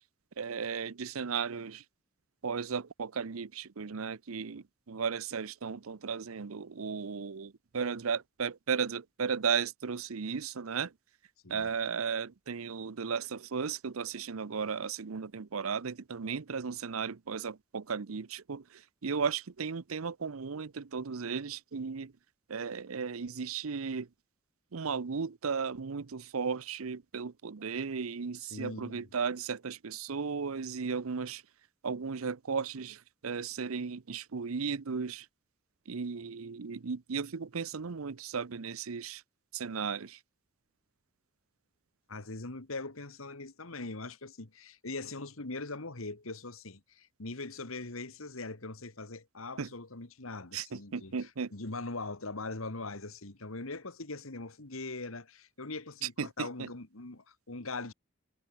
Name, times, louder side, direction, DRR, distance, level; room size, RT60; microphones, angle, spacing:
voice 1, 0.4-1.8 2.4-10.9 11.5-22.1 22.5-24.1 24.7-31.4 31.8-35.3 35.9-39.2 39.5-40.2 49.6-49.7 50.5-51.5 56.2-56.7, right 6 dB, 85° right, 0.7 m, -35 dB
voice 2, 28.5-29.0 42.1-57.9, left 3 dB, 80° left, 2.1 m, -41 dB
head